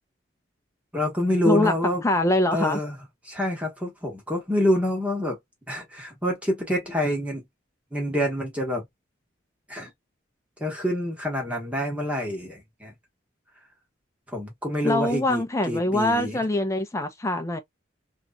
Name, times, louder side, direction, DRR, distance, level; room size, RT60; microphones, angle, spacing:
voice 1, 0.9-2.0 2.5-3.0 3.2-5.4 5.7-7.4 7.9-8.8 9.7-9.9 10.6-12.9 14.3-16.4, equal, 5° right, 1.2 m, -27 dB
voice 2, 2.0-2.8 14.8-17.6, left 1 dB, 15° left, 0.6 m, -23 dB
3.0 x 2.6 x 2.3 m
head